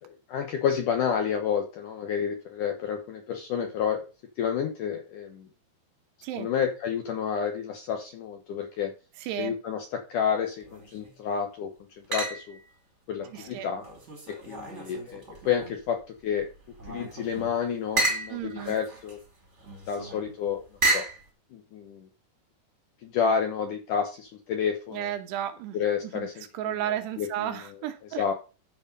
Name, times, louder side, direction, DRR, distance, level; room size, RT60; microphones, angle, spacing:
voice 1, 0.0-4.0 4.4-5.5 6.4-8.9 9.4-12.6 13.1-13.8 14.5-16.5 16.9-19.2 19.9-20.6 20.9-21.1 21.5-22.1 23.0-25.1 25.7-26.9 27.2-27.7 28.2-28.3, left 7 dB, 70° left, 4 dB, 2.0 m, -30 dB
voice 2, 9.2-9.5 13.3-13.7 18.3-18.8 24.9-25.8 26.1-26.3 26.5-28.2, right 11 dB, 75° right, 9 dB, 3.0 m, -33 dB
sound 1, 10.6-11.2 12.1-12.7 13.2-15.9 16.3-21.2, right 2 dB, 25° right, 1.8 m, -33 dB
13.5 x 5.1 x 5.2 m, 0.33 s
omnidirectional pair, 5.1 m